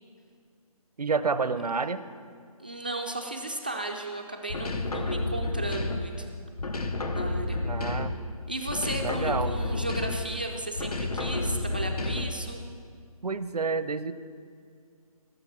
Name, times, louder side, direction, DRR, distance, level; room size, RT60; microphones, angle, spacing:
voice 1, 1.0-2.0 7.6-8.1 9.0-9.5 13.2-14.1, right 4 dB, 85° right, 13 dB, 0.7 m, -29 dB
voice 2, 2.6-6.4 7.1-7.9 8.5-12.6, right 2 dB, 15° right, 3 dB, 0.3 m, -35 dB
sound 1, 4.5-6.2 6.6-8.3 8.7-10.4 10.8-12.5, left 2 dB, 80° left, 1.3 m, -30 dB
16.5 x 7.0 x 7.2 m, 2.1 s
figure-of-eight pair, 160°, 19 cm